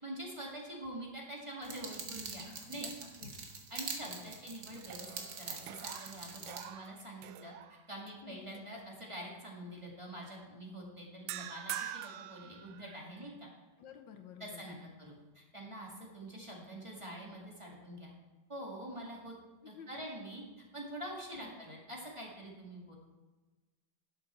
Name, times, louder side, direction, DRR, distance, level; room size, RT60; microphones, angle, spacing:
voice 1, 0.0-2.9 3.7-13.5 14.4-18.1 18.5-19.3 19.7-20.4 20.7-23.0, right 1 dB, 15° right, -3 dB, 2.0 m, -46 dB
sound 1, 1.6-6.6, right 5 dB, 65° right, 1.8 m, -44 dB
voice 2, 2.4-2.9 3.2-3.3 4.0-4.4 8.2-8.4 13.8-14.6 19.6-20.0 21.3-21.6, left 7 dB, 80° left, 6 dB, 1.5 m, -52 dB
sound 2, 3.7-4.4 4.8-8.1 8.5-8.8 11.3-13.2, right 11 dB, 80° right, 1.3 m, -46 dB
11.5 x 7.7 x 4.4 m, 1.2 s
omnidirectional pair, 2.0 m